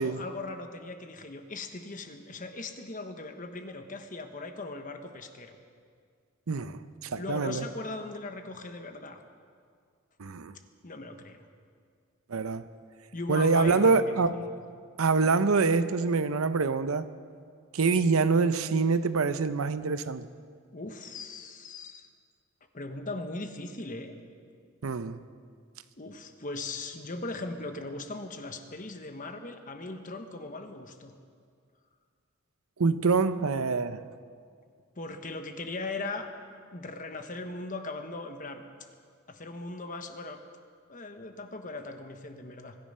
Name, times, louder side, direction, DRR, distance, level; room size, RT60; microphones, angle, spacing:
voice 1, 0.0-5.6 7.2-9.2 10.8-11.5 13.1-14.6 20.7-22.1 22.7-24.2 26.0-31.1 35.0-36.3 36.7-38.6 39.3-40.4 40.9-42.8, left 2 dB, 40° left, 1.1 m, -39 dB
voice 2, 6.5-7.6 10.2-10.6 12.3-12.6 13.3-14.5 15.0-17.1 17.7-20.3 24.8-25.2 32.8-34.0, right 4 dB, 80° right, 0.7 m, -25 dB
24.0 x 10.5 x 5.5 m
head